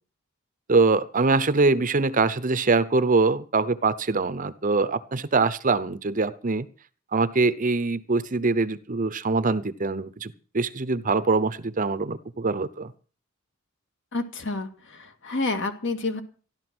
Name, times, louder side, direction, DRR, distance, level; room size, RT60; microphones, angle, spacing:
voice 1, 0.7-6.7 7.1-12.9, right 3 dB, 40° right, 16 dB, 0.8 m, -23 dB
voice 2, 14.1-16.2, left 3 dB, 60° left, 7 dB, 2.1 m, -29 dB
14.5 x 12.0 x 6.1 m, 0.40 s
head